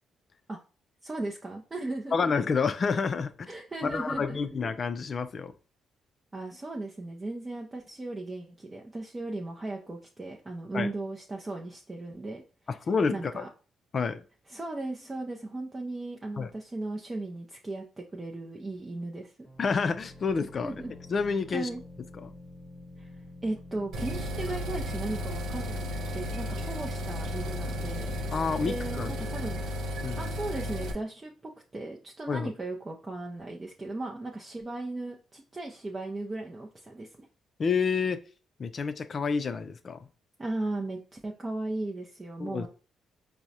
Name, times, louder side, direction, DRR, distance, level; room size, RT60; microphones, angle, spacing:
voice 1, 1.0-2.3 3.5-4.6 6.3-12.4 13.1-13.5 14.5-19.3 20.6-20.9 21.5-21.8 23.0-23.1 23.4-25.8 26.1-28.1 28.6-29.6 30.2-31.3 31.7-37.3 40.4-42.7, right 2 dB, 25° right, 0 dB, 0.5 m, -36 dB
voice 2, 2.1-3.5 3.8-5.5 10.7-10.9 12.9-13.4 13.9-14.2 16.4-16.5 19.6-20.7 21.1-21.7 22.2-22.3 28.3-29.1 30.0-30.3 32.3-32.5 37.6-38.2 38.6-40.1 42.4-42.7, left 5 dB, 45° left, 11 dB, 0.4 m, -29 dB
sound 1, 19.4-31.0, left 2 dB, 20° left, 1.1 m, -48 dB
sound 2, 23.9-30.9, left 1 dB, 80° right, 0.5 m, -34 dB
4.6 x 2.1 x 2.7 m, 0.37 s
cardioid pair, 90°, 0 cm